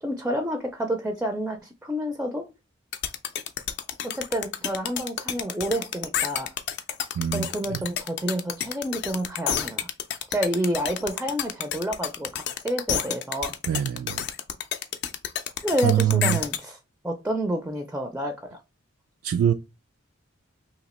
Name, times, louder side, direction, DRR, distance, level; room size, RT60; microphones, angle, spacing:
voice 1, 0.0-2.4 4.0-6.5 7.3-9.9 10.3-13.5 15.6-16.8 17.0-18.6, equal, 10° right, 0.4 m, -29 dB
sound 1, 2.9-16.6, left 9 dB, 55° left, 0.4 m, -29 dB
voice 2, 7.1-7.8 13.7-14.3 15.8-16.4 19.2-19.5, right 10 dB, 85° right, 0.3 m, -24 dB
2.9 x 2.8 x 4.1 m
head